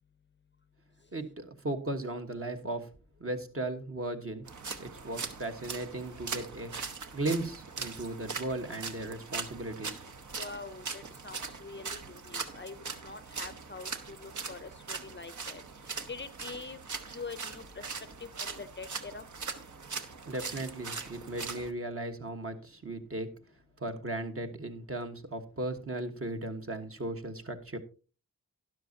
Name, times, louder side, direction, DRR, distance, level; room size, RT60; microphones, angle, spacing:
voice 1, 1.1-2.9 3.2-4.5 4.8-6.7 7.1-10.0 20.0-23.3 23.8-27.8, right 2 dB, 40° right, 5 dB, 1.3 m, -36 dB
sound 1, 4.5-21.7, right 5 dB, 60° right, 1.1 m, -41 dB
voice 2, 10.4-15.6 16.1-16.8 17.1-17.9 18.4-19.2, left 4 dB, 35° left, 13 dB, 0.6 m, -44 dB
12.5 x 11.0 x 2.7 m, 0.34 s
wide cardioid pair, 100°, 34 cm